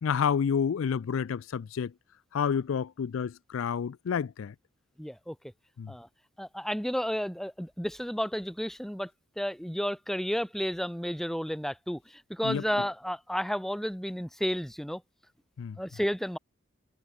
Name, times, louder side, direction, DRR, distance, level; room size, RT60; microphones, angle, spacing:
voice 1, 0.0-1.9 2.3-4.5 5.8-5.9 12.4-12.6 15.6-15.8, left 7 dB, 80° left, 0.4 m, -29 dB
voice 2, 5.0-5.4 5.9-6.1 6.4-9.1 9.4-15.0 15.8-16.4, equal, ahead, 1.1 m, -32 dB
head